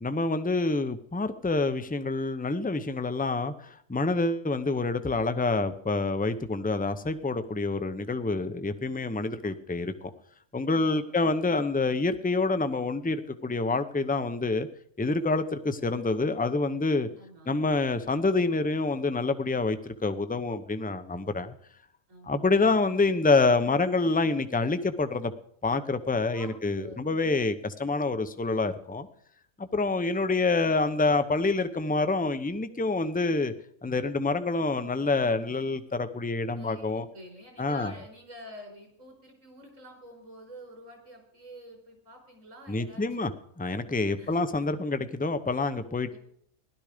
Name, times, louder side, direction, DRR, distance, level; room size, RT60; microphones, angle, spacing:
voice 1, 0.0-10.1 10.5-14.7 15.0-17.1 17.5-21.5 22.3-25.3 25.6-29.1 29.6-33.5 33.8-37.0 37.6-37.9 42.7-43.3 43.6-46.2, left 3 dB, 10° left, 9 dB, 0.6 m, -27 dB
voice 2, 10.7-11.2 17.2-17.5 22.1-22.5 26.3-27.2 36.5-43.3 44.2-44.5 46.1-46.2, equal, 70° right, 2 dB, 5.3 m, -48 dB
16.5 x 12.0 x 5.1 m, 0.64 s
omnidirectional pair, 1.4 m